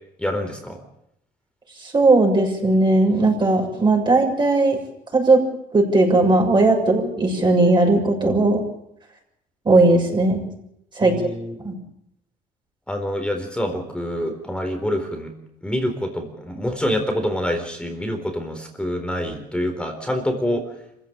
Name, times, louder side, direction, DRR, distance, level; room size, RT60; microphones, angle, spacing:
voice 1, 0.2-0.8 11.0-11.6 12.9-15.3 15.6-20.7, equal, 5° left, 4 dB, 4.1 m, -26 dB
voice 2, 1.8-4.8 5.1-5.4 5.7-8.6 9.7-10.4 11.0-11.1 11.6-11.8, right 2 dB, 25° right, 1 dB, 6.9 m, -17 dB
26.5 x 16.0 x 8.8 m, 0.79 s
cardioid pair, 110°, 17 cm